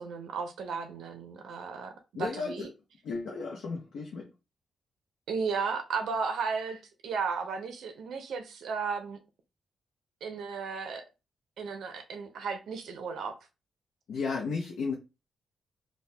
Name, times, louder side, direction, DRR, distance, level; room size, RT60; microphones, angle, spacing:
voice 1, 0.0-1.9 2.2-2.7 5.3-9.2 10.2-11.0 11.6-13.3, right 5 dB, 85° right, 0.4 m, -34 dB
voice 2, 2.1-2.7 3.0-4.3 14.1-14.9, left 4 dB, 75° left, 0.5 m, -34 dB
2.6 x 2.1 x 3.2 m
wide cardioid pair, 180°, 0 cm